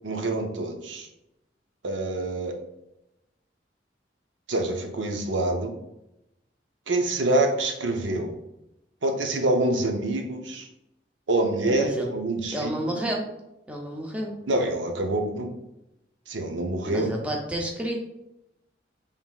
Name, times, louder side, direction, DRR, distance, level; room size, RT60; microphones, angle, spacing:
voice 1, 0.0-1.1 1.8-2.5 4.5-5.7 6.9-8.4 9.0-10.7 11.3-13.0 14.5-15.5 16.3-17.1, right 2 dB, 90° right, 4 dB, 0.7 m, -26 dB
voice 2, 11.7-12.1 12.5-13.3 13.7-14.4 16.8-18.1, right 1 dB, 5° right, -1 dB, 0.7 m, -30 dB
5.4 x 3.5 x 2.4 m, 0.88 s
head